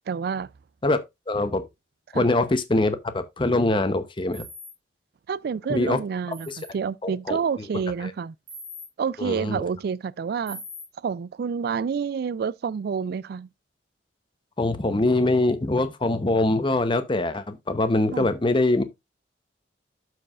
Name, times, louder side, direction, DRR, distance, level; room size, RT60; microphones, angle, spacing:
voice 1, 0.1-0.5 2.1-2.3 5.3-6.5 6.7-8.3 9.0-10.6 11.0-13.5 18.1-18.3, right 6 dB, 60° right, 0.3 m, -28 dB
voice 2, 1.3-1.6 2.1-4.4 5.7-6.0 6.5-6.6 7.0-7.7 8.0-8.1 9.2-9.6 14.6-18.8, left 2 dB, 25° left, 0.7 m, -23 dB
sound 1, 4.3-4.7 6.3-6.7 8.5-8.9 10.5-10.8, left 1 dB, 80° right, 3.1 m, -40 dB
12.5 x 4.6 x 2.4 m
head